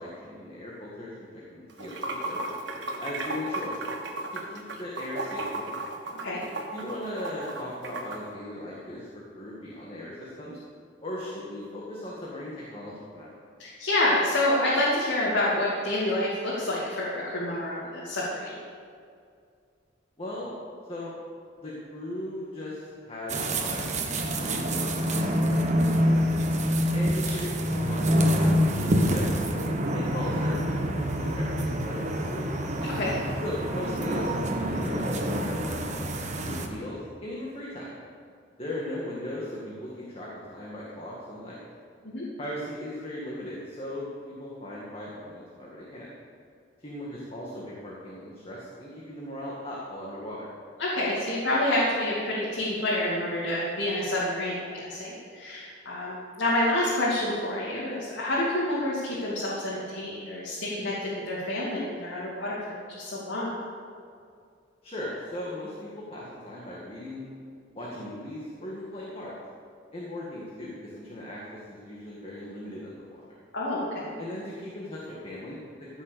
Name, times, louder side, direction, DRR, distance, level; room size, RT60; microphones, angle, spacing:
voice 1, 0.0-2.6 3.0-3.8 4.3-5.8 6.7-10.6 11.0-13.3 20.2-20.6 20.9-21.1 21.6-25.6 25.9-26.3 26.9-28.0 28.8-29.3 29.9-32.6 33.4-35.8 36.4-37.9 38.6-41.6 42.4-46.1 46.8-50.5 64.8-67.3 67.7-69.3 69.9-73.1 74.2-76.0, left 1 dB, 30° left, -5 dB, 1.9 m, -38 dB
Water / Sink (filling or washing), 1.7-8.2, right 2 dB, 70° right, 1.5 m, -34 dB
voice 2, 13.6-18.6 32.8-33.1 42.0-42.3 50.8-62.6 62.9-63.5 73.5-74.1, left 1 dB, 90° left, -7 dB, 2.5 m, -28 dB
sound 1, 23.3-36.7, equal, 40° right, 1.2 m, -26 dB
15.0 x 6.4 x 6.8 m, 2.3 s
head